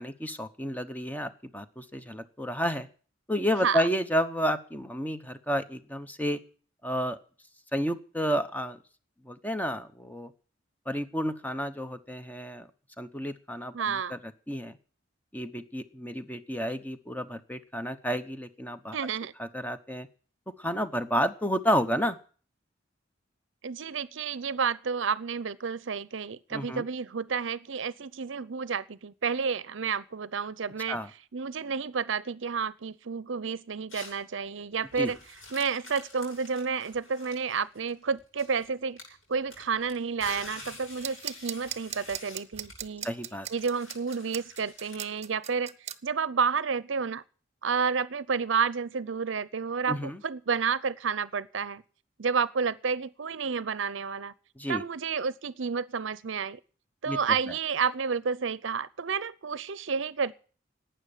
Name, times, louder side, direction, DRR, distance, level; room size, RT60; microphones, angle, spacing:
voice 1, 0.0-2.9 3.3-6.4 6.8-7.2 7.7-8.8 9.2-10.3 10.9-12.7 13.0-14.8 15.3-19.0 19.4-20.1 20.6-22.2 26.5-26.8 30.9-31.1 35.0-35.1 43.0-43.5 49.9-50.2 54.6-54.8 57.1-57.2, equal, 10° left, 0.9 m, -31 dB
voice 2, 13.7-14.2 18.9-19.3 23.6-31.0 31.3-35.2 35.5-39.0 39.3-43.1 43.5-45.7 46.0-47.2 47.6-51.8 52.2-54.3 54.7-56.6 57.0-60.3, right 5 dB, 65° right, 0.6 m, -30 dB
sound 1, 33.9-34.2 34.8-38.6 39.0-45.3, left 2 dB, 85° left, 7.7 m, -47 dB
sound 2, 41.0-46.0, right 10 dB, 35° right, 0.8 m, -37 dB
12.0 x 8.9 x 9.9 m
head